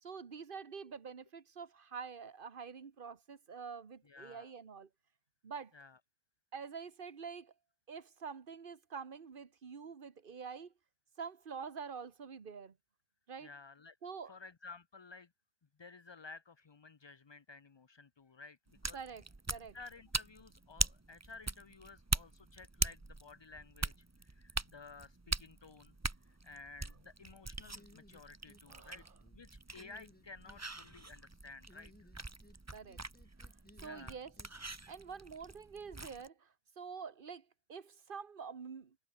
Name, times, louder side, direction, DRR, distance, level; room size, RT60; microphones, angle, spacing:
voice 1, 0.0-4.9 5.4-5.7 6.5-7.5 7.9-10.7 11.2-12.8 13.3-13.5 14.0-14.4 18.9-19.8 28.7-29.1 32.7-33.0 33.8-34.3 34.9-39.0, right 6 dB, 55° right, 1.4 m, -47 dB
voice 2, 4.1-4.5 5.7-6.0 13.4-14.0 14.3-15.3 15.8-19.0 19.7-26.0 26.2-29.1 29.3-32.1 33.8-34.2, left 4 dB, 35° left, 0.5 m, -54 dB
sound 1, 18.7-36.3, right 2 dB, 15° right, 0.9 m, -42 dB
sound 2, 27.7-28.6 28.9-29.4 29.7-30.6 31.7-32.6 32.9-34.5, left 1 dB, 10° left, 1.5 m, -62 dB
omnidirectional pair, 1.1 m